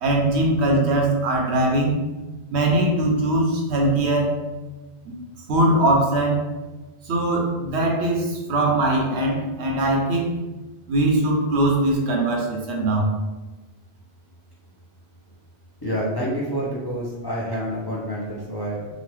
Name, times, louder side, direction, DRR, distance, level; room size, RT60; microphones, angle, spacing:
voice 1, 0.0-2.0 2.5-4.4 5.0-5.1 5.5-6.4 7.1-10.3 10.9-13.1, right 1 dB, 85° right, 0 dB, 0.9 m, -21 dB
voice 2, 15.8-18.9, equal, 30° left, -7 dB, 0.5 m, -28 dB
2.9 x 2.1 x 3.1 m, 1.1 s
omnidirectional pair, 1.1 m